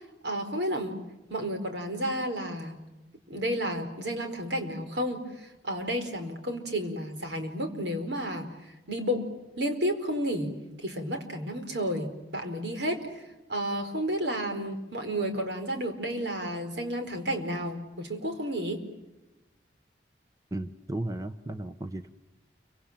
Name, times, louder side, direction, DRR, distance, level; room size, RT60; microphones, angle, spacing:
voice 1, 0.2-1.0 1.3-2.8 3.3-9.3 9.6-10.5 10.8-18.8, equal, 75° right, 5 dB, 4.8 m, -32 dB
voice 2, 20.5-22.1, right 1 dB, 20° right, 9 dB, 1.0 m, -35 dB
29.5 x 25.5 x 7.5 m, 1.0 s
head